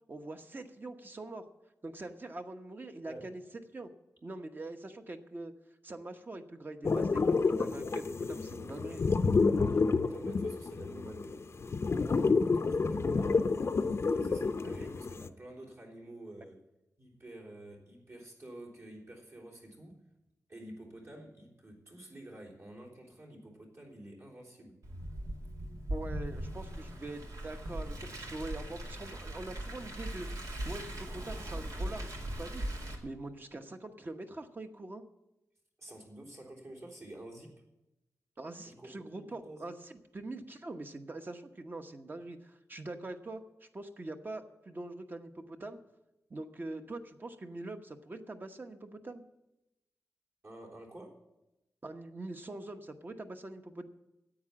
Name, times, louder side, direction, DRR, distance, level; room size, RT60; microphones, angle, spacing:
voice 1, 0.1-1.4 1.8-3.4 3.7-3.9 4.2-5.5 5.8-9.0 25.9-30.3 30.6-32.1 32.4-32.6 33.0-35.0 38.4-45.8 46.3-49.2 51.8-53.9, right 2 dB, 35° right, 6 dB, 1.0 m, -43 dB
sound 1, 6.8-15.3, left 4 dB, 50° left, 0.6 m, -29 dB
voice 2, 9.5-11.9 12.2-13.5 14.1-16.6 17.0-20.0 20.5-24.8 35.8-37.6 38.7-39.7 50.4-51.2, right 1 dB, 55° right, -4 dB, 3.6 m, -49 dB
Car, 24.8-33.0, right 1 dB, 85° right, 2.2 m, -39 dB
10.0 x 8.5 x 8.7 m, 0.93 s
wide cardioid pair, 130°, 6 cm